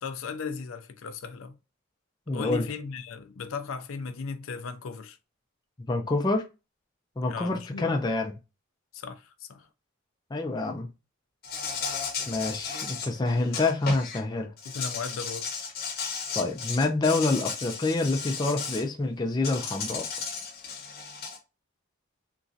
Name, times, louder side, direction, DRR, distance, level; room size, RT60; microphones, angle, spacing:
voice 1, 0.0-1.6 2.3-5.2 7.2-7.9 8.9-9.7 14.7-15.5, left 5 dB, 85° left, 0.4 m, -36 dB
voice 2, 2.3-2.7 5.9-6.4 7.2-8.3 10.3-10.9 12.3-14.5 16.3-20.0, left 2 dB, 20° left, 0.4 m, -27 dB
Insect, 11.4-14.2 14.6-18.8 19.4-21.4, left 5 dB, 45° left, 0.7 m, -35 dB
3.0 x 2.5 x 2.6 m
head